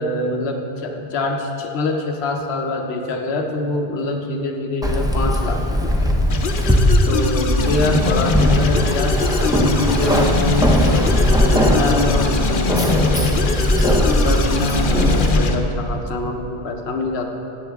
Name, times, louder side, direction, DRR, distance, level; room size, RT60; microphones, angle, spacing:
voice 1, 0.0-6.2 7.1-17.3, left 2 dB, 80° left, 3 dB, 1.1 m, -25 dB
Keys jangling, 4.8-15.3, equal, 5° right, 0.6 m, -18 dB
sound 1, 6.3-15.5, left 4 dB, 55° left, 0.8 m, -23 dB
14.5 x 8.7 x 3.5 m, 2.8 s
omnidirectional pair, 1.1 m